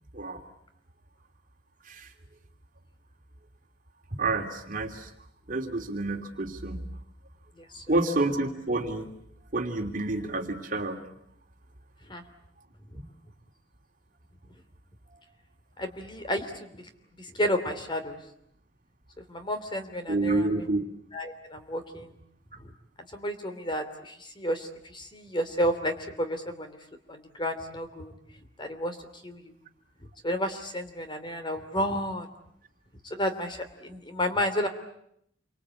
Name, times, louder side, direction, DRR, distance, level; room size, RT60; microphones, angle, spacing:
voice 1, 4.1-5.1 5.5-6.8 7.9-9.1 9.5-11.0 12.9-13.0 20.1-20.8, right 2 dB, 45° right, 4 dB, 2.9 m, -29 dB
voice 2, 15.8-16.5 17.3-18.2 19.3-20.5 21.1-22.1 23.1-26.8 27.1-28.1 28.6-29.0 29.2-29.5 30.2-32.3 33.2-34.7, equal, 25° left, 7 dB, 3.0 m, -31 dB
28.5 x 25.0 x 8.5 m, 0.72 s
head